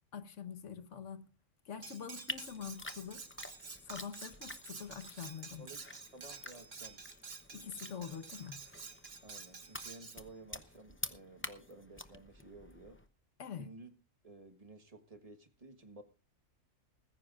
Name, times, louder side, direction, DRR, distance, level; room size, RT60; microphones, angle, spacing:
voice 1, 0.1-1.3 1.6-3.3 3.9-5.7 7.5-8.6 13.4-13.7, left 7 dB, 65° left, 1.4 m, -45 dB
Cutlery silverware, 1.8-10.2, right 4 dB, 50° right, 1.8 m, -50 dB
sound 1, 2.3-13.1, left 2 dB, 15° left, 0.6 m, -49 dB
voice 2, 6.1-7.0 7.6-7.7 9.2-13.0 13.5-13.9 14.2-16.0, right 2 dB, 30° right, 1.4 m, -54 dB
19.5 x 15.0 x 2.4 m
omnidirectional pair, 1.4 m